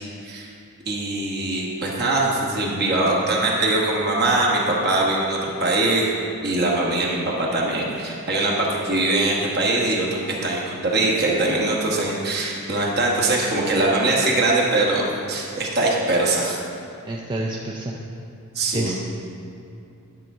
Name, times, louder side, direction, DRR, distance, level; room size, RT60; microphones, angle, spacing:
voice 1, 0.9-6.1 6.4-16.6 18.5-19.0, right 2 dB, 45° right, -2 dB, 1.3 m, -22 dB
voice 2, 17.0-18.0 18.7-19.0, right 1 dB, 20° right, -2 dB, 0.4 m, -28 dB
10.5 x 3.7 x 6.0 m, 2.5 s
head